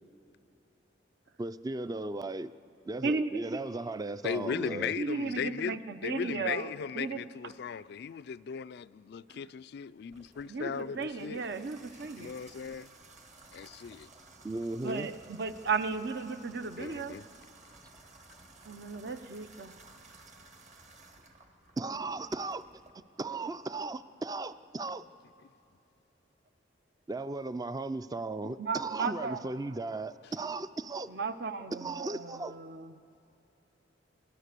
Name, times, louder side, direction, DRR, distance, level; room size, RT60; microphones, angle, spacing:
voice 1, 1.4-2.5 2.9-4.9 14.4-15.1 21.8-22.6 23.2-25.1 27.1-31.1 31.7-32.6, right 2 dB, 20° right, 0.4 m, -36 dB
voice 2, 3.0-3.6 5.0-7.2 9.3-9.4 10.5-12.3 14.8-17.2 18.6-19.7 28.6-29.4 31.1-33.0, right 4 dB, 60° right, 0.7 m, -35 dB
voice 3, 4.2-11.4 12.2-12.9 13.5-14.1 16.8-17.2 28.4-28.5, left 7 dB, 60° left, 0.3 m, -37 dB
Water tap faucet / Bathtub (filling or washing), 10.1-22.9, right 3 dB, 40° right, 1.5 m, -56 dB
29.0 x 13.5 x 6.7 m
head